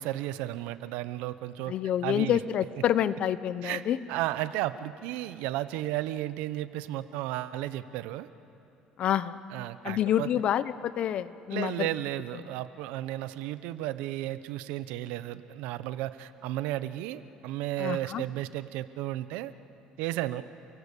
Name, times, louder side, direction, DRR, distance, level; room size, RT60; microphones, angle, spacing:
voice 1, 0.0-1.7 2.0-2.4 3.6-3.8 4.1-8.3 9.5-10.3 11.5-19.5 20.0-20.4, right 15 dB, 85° right, 14 dB, 0.9 m, -33 dB
voice 2, 1.7-4.0 9.0-9.4 9.8-11.9 17.8-18.2, left 10 dB, 55° left, 15 dB, 0.9 m, -28 dB
29.5 x 23.0 x 8.4 m, 2.9 s
cardioid pair, 120°, 2 cm